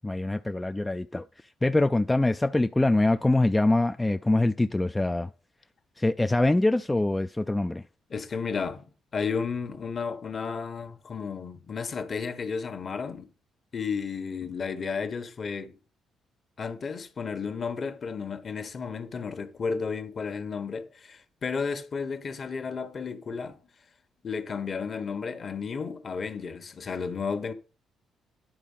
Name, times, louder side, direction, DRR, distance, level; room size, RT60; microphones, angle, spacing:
voice 1, 0.0-5.3 6.0-7.8, left 2 dB, 15° left, 0.4 m, -24 dB
voice 2, 8.1-8.9 9.1-13.3 13.7-15.7 16.6-23.6 24.2-27.5, left 5 dB, 45° left, 1.3 m, -33 dB
10.0 x 4.1 x 5.6 m
cardioid pair, 90°, 0 cm